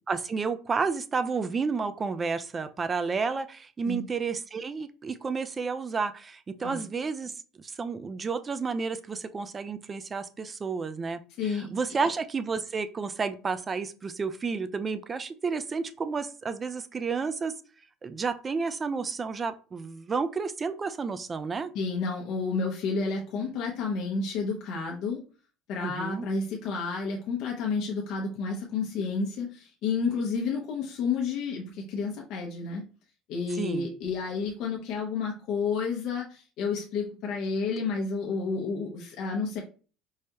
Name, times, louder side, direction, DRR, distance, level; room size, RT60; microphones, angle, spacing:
voice 1, 0.1-7.3 7.6-17.5 18.0-21.7 25.8-26.3 33.6-33.9, right 5 dB, 25° right, 0.4 m, -31 dB
voice 2, 21.7-25.2 25.7-32.8 33.3-39.6, left 4 dB, 60° left, 0.7 m, -30 dB
4.7 x 2.1 x 2.8 m
supercardioid pair, 110°, 0 cm